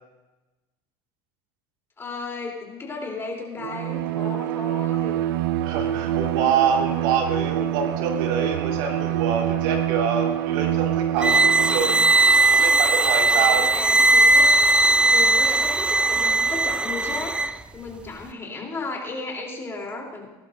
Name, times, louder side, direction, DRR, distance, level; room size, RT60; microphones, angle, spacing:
voice 1, 2.0-5.2 13.2-14.4 15.0-17.3 17.7-20.3, left 3 dB, 20° left, -1 dB, 3.3 m, -34 dB
Bowed string instrument, 3.6-12.1, right 12 dB, 90° right, 0.5 m, -26 dB
voice 2, 5.6-12.1 12.5-13.7, right 6 dB, 75° right, 2 dB, 2.2 m, -26 dB
sound 1, 11.2-17.5, right 2 dB, 10° right, 0.4 m, -18 dB
19.5 x 11.5 x 2.6 m, 1.1 s
supercardioid pair, 115°, 11 cm